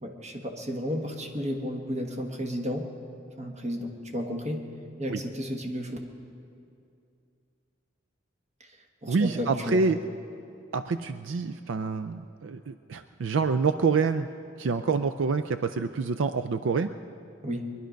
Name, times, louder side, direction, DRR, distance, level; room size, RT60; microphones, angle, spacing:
voice 1, 0.0-2.9 3.4-4.7 5.0-6.0 8.6-8.7 9.0-9.8 17.4-17.6, equal, 35° right, 3 dB, 1.4 m, -33 dB
voice 2, 9.1-10.0 10.7-14.3 14.6-16.9, right 4 dB, 75° right, 10 dB, 0.4 m, -27 dB
21.5 x 11.5 x 5.2 m, 2.5 s
head